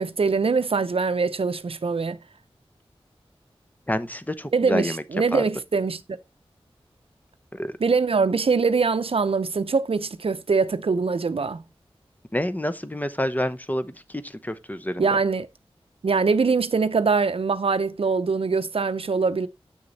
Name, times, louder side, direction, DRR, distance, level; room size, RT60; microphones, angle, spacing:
voice 1, 0.0-2.2 4.5-6.2 7.8-11.6 15.0-15.5 16.0-19.5, right 4 dB, 65° right, 0.6 m, -23 dB
voice 2, 3.9-5.0 5.3-5.4 7.5-7.8 12.3-15.1, left 1 dB, 15° left, 0.8 m, -28 dB
7.9 x 6.6 x 4.0 m
wide cardioid pair, 55°, 10 cm